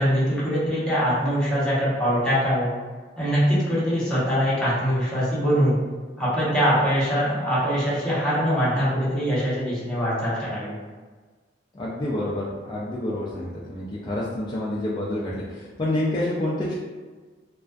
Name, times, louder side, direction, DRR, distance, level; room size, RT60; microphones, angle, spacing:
voice 1, 0.0-2.7 3.2-5.7 6.2-10.7, equal, 5° left, -10 dB, 0.8 m, -23 dB
voice 2, 11.7-16.7, left 1 dB, 25° left, -7 dB, 0.3 m, -28 dB
2.3 x 2.3 x 2.2 m, 1.4 s
head